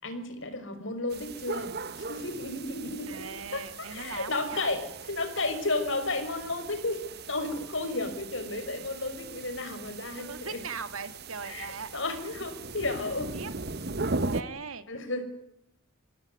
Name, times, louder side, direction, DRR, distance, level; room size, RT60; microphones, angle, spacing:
voice 1, 0.0-1.7 2.1-3.3 3.5-7.0 7.3-10.6 11.4-11.7 11.9-13.4 14.9-15.3, left 2 dB, 60° left, 7 dB, 6.0 m, -33 dB
sound 1, 1.1-14.4, right 3 dB, 50° right, 1.3 m, -39 dB
voice 2, 3.1-4.7 10.2-11.9 13.3-13.5 14.3-14.9, right 5 dB, 80° right, 11 dB, 2.4 m, -39 dB
26.5 x 18.0 x 9.7 m, 0.80 s
head